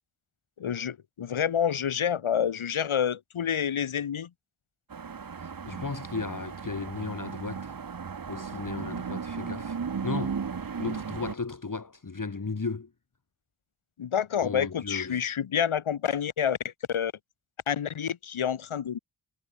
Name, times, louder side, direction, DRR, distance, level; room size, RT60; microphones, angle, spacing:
voice 1, 0.6-4.3 14.0-16.6 16.9-17.1 17.7-19.0, left 8 dB, 75° left, 1.3 m, -28 dB
sound 1, 4.9-11.3, right 6 dB, 45° right, 1.1 m, -35 dB
voice 2, 5.4-7.8 8.3-9.8 10.0-10.4 10.8-12.9 14.4-15.2, left 4 dB, 40° left, 2.2 m, -35 dB
cardioid pair, 50°, 49 cm